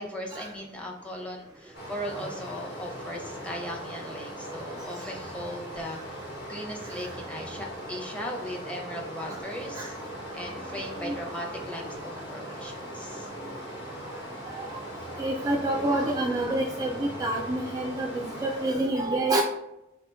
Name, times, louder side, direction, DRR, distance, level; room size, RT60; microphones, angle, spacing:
voice 1, 0.0-10.0 10.3-13.3, equal, 5° left, 0 dB, 0.6 m, -38 dB
Stream, 1.7-18.7, equal, 60° left, 1.2 m, -39 dB
voice 2, 15.2-19.4, right 2 dB, 20° right, 1 dB, 0.3 m, -28 dB
3.7 x 2.9 x 3.3 m, 0.89 s
head